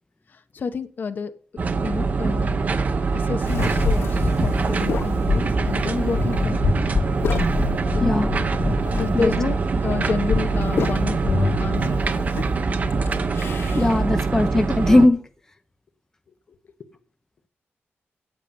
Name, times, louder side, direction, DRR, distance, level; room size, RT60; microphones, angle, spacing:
voice 1, 0.3-1.3 1.8-2.6 3.1-6.8 7.9-8.3 8.9-9.6 9.8-12.4, left 5 dB, 50° left, 1.0 m, -29 dB
sound 1, 1.6-15.1, right 4 dB, 40° right, 0.9 m, -24 dB
sound 2, 3.4-14.0, left 4 dB, 80° left, 2.1 m, -27 dB
voice 2, 8.0-8.3 9.1-9.3 13.8-15.2, left 2 dB, 10° left, 0.7 m, -18 dB
8.9 x 8.4 x 7.1 m
wide cardioid pair, 170°, 4 cm